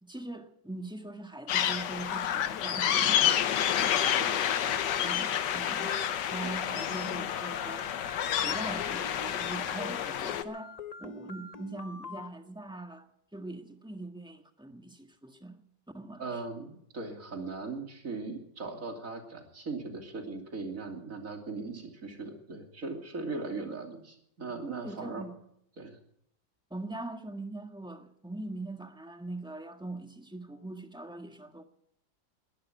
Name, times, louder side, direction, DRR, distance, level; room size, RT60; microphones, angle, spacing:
voice 1, 0.0-3.3 5.0-6.0 6.3-7.9 8.4-13.1 13.3-15.6 15.9-16.4 24.8-25.3 26.7-31.6, right 2 dB, 5° right, 1.3 m, -42 dB
sound 1, 1.5-10.4, left 9 dB, 70° left, 1.5 m, -29 dB
voice 2, 4.2-4.8 16.2-25.3 25.8-26.0, right 3 dB, 45° right, 3.2 m, -39 dB
sound 2, 4.3-12.3, left 6 dB, 35° left, 0.6 m, -45 dB
21.0 x 11.5 x 5.9 m
omnidirectional pair, 2.0 m